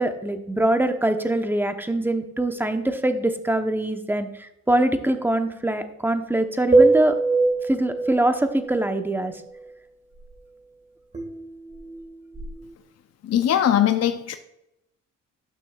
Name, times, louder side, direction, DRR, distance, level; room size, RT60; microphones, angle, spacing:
voice 1, 0.0-7.1 7.7-9.3, right 1 dB, 5° right, 7 dB, 0.9 m, -23 dB
sound 1, 6.7-8.9 11.1-12.7, right 3 dB, 25° right, 1.9 m, -23 dB
voice 2, 13.2-14.4, left 10 dB, 50° left, 8 dB, 0.6 m, -20 dB
11.5 x 6.1 x 2.4 m, 0.85 s
cardioid pair, 70°, 32 cm